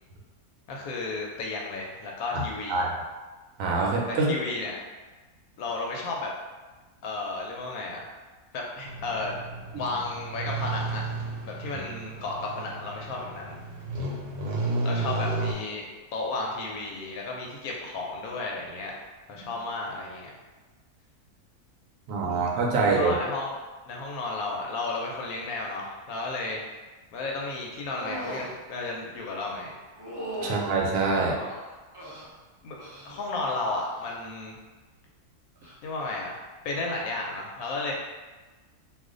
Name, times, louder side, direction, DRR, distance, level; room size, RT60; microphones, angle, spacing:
voice 1, 0.7-2.9 4.1-4.8 5.6-6.3 7.0-8.1 8.5-9.3 9.8-11.0 11.4-13.5 14.8-15.9 16.1-18.9 19.3-20.3 22.9-23.5 23.9-26.6 27.1-29.7 30.4-30.6 31.2-31.5 32.6-32.8 33.0-34.6 35.8-37.9, left 3 dB, 75° left, -1 dB, 1.0 m, -33 dB
voice 2, 3.6-4.3 9.7-9.8 11.7-11.8 19.4-19.5 22.1-23.1 30.4-31.4, right 3 dB, 70° right, -1 dB, 1.0 m, -25 dB
sound 1, 8.9-15.5, right 2 dB, 85° right, 1.2 m, -33 dB
sound 2, 27.9-28.5 29.9-30.7 31.5-32.3 32.8-33.2 33.6-34.0 35.5-35.7, right 1 dB, 35° right, 0.3 m, -38 dB
2.4 x 2.4 x 3.7 m, 1.3 s
omnidirectional pair, 1.6 m